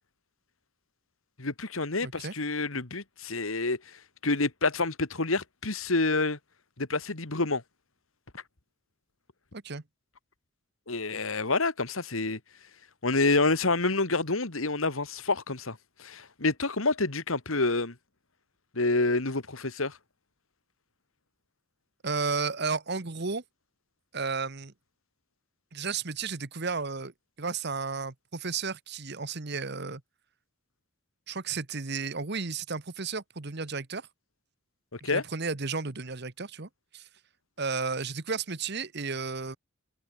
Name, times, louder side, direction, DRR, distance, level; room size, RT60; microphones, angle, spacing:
voice 1, 1.4-4.0 4.2-6.4 6.8-7.6 8.3-8.4 10.9-12.4 13.0-17.9 18.7-20.0 34.9-35.2, left 3 dB, 75° left, 2.3 m, -28 dB
voice 2, 2.0-2.3 9.5-9.8 22.0-23.4 24.1-24.7 25.7-27.1 27.4-30.0 31.3-34.1 35.0-37.1 37.6-39.6, right 4 dB, 50° right, 1.3 m, -33 dB
head